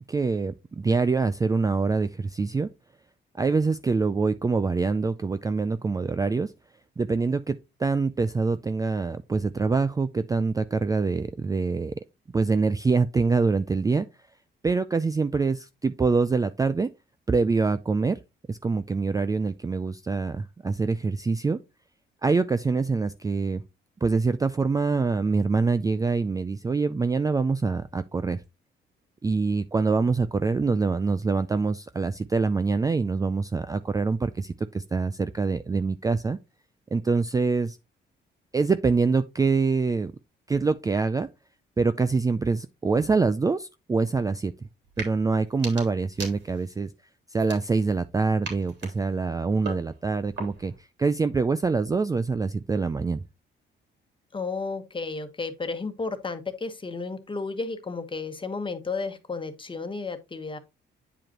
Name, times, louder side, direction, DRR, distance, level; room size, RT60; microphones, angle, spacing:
voice 1, 0.1-2.7 3.3-6.5 7.0-12.0 12.3-14.1 14.6-16.9 17.3-18.2 18.5-21.6 22.2-23.6 24.0-28.4 29.2-36.4 36.9-37.8 38.5-40.1 40.5-41.3 41.8-44.7 45.0-46.9 47.3-50.7 51.0-53.2, right 4 dB, 15° right, 0.4 m, -25 dB
sound 1, 44.8-45.1 45.5-46.8 47.3-48.0 48.4-50.8, right 3 dB, 65° right, 3.4 m, -40 dB
voice 2, 54.3-60.6, left 4 dB, 25° left, 1.3 m, -33 dB
9.0 x 4.9 x 2.9 m
cardioid pair, 90°, 20 cm